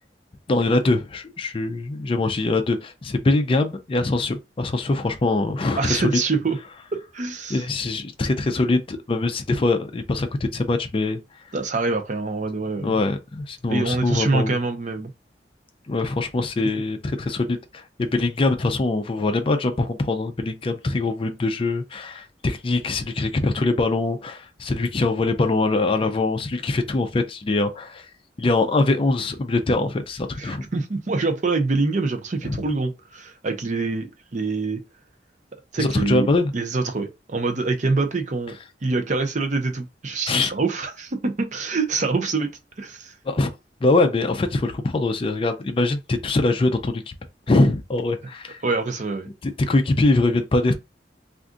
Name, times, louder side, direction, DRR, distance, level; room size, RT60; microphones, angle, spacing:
voice 1, 0.5-6.2 7.5-11.2 12.8-14.6 15.9-28.1 28.4-30.6 32.5-32.6 35.8-36.5 40.3-40.5 43.3-43.5 43.8-47.1 47.5-48.6 49.4-50.7, left 2 dB, 30° left, 0.4 m, -23 dB
voice 2, 5.8-6.6 6.9-7.6 11.5-13.0 13.7-15.1 30.4-34.8 35.7-36.3 36.5-38.6 38.8-42.5 42.8-43.1 48.6-49.3, right 3 dB, 45° right, 0.6 m, -25 dB
2.5 x 2.3 x 3.7 m
head